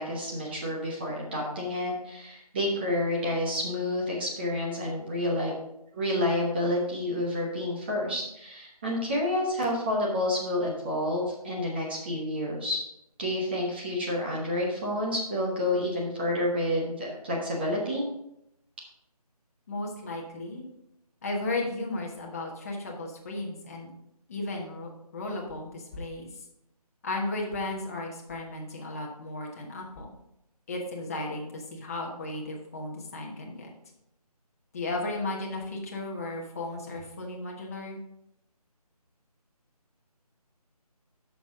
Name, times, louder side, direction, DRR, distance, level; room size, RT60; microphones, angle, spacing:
voice 1, 0.0-5.6 5.9-12.8 13.2-18.0, left 1 dB, 15° right, -3 dB, 0.9 m, -29 dB
voice 2, 19.7-20.6 21.2-23.9 24.3-26.3 27.0-30.1 30.7-33.7 34.7-38.0, left 2 dB, 25° left, 0 dB, 1.1 m, -35 dB
8.8 x 6.3 x 3.7 m, 0.80 s
figure-of-eight pair, 160°, 20 cm